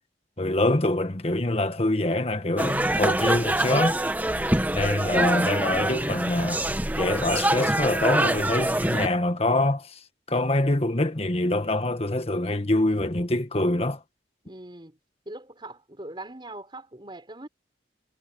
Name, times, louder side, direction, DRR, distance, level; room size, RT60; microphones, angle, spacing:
voice 1, 0.4-4.0 4.7-6.6 7.0-10.0 10.3-14.0, left 1 dB, 35° left, 1.6 m, -25 dB
sound 1, 2.6-9.1, right 1 dB, 10° right, 1.2 m, -25 dB
voice 2, 8.9-9.4 14.4-15.0 15.2-17.5, right 1 dB, 25° right, 4.6 m, -42 dB
head